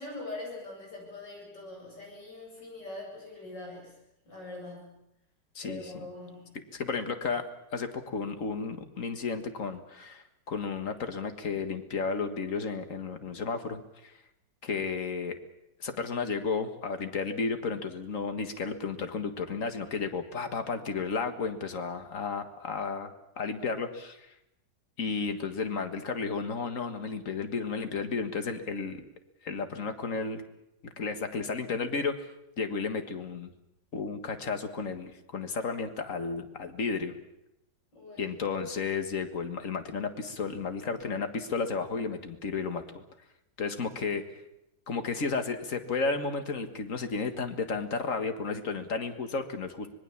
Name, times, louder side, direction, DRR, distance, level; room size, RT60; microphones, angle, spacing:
voice 1, 0.0-3.9 4.3-5.0 5.6-6.6 37.9-38.3, left 2 dB, 70° left, -1 dB, 8.8 m, -42 dB
voice 2, 5.6-6.1 6.7-7.5 7.7-14.2 14.6-15.4 15.8-24.3 25.0-29.0 29.4-30.4 30.8-32.3 32.6-33.5 33.9-37.2 38.2-43.0 43.6-44.2 44.9-49.9, left 4 dB, 45° left, 8 dB, 2.0 m, -33 dB
25.0 x 20.5 x 7.3 m, 0.84 s
omnidirectional pair, 2.0 m